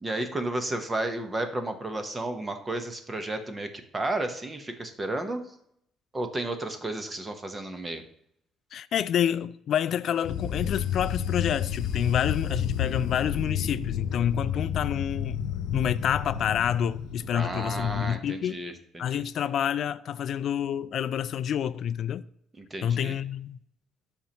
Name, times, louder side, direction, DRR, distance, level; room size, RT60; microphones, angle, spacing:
voice 1, 0.0-5.4 6.1-8.0 17.3-19.2 22.6-23.2, right 2 dB, 20° right, 0.9 m, -32 dB
voice 2, 8.7-15.4 15.7-18.7 19.0-22.2 22.8-23.6, left 9 dB, 55° left, 0.3 m, -28 dB
sound 1, 10.2-18.2, left 9 dB, 70° left, 0.7 m, -31 dB
12.5 x 4.4 x 2.9 m
cardioid pair, 130°, 0 cm